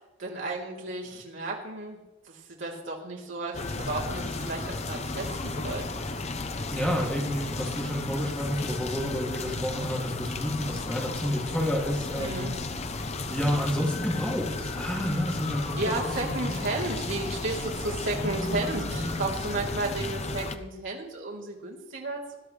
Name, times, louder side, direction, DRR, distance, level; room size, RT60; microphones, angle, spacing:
voice 1, 0.2-2.0 2.2-6.0 12.2-12.5 15.8-22.3, right 2 dB, 60° right, -4 dB, 3.5 m, -33 dB
sound 1, 3.5-20.6, left 3 dB, 30° left, 0.8 m, -34 dB
voice 2, 6.7-12.5 13.3-16.7 18.1-19.2, equal, 5° left, -3 dB, 2.6 m, -30 dB
21.0 x 12.5 x 3.4 m, 1.1 s
head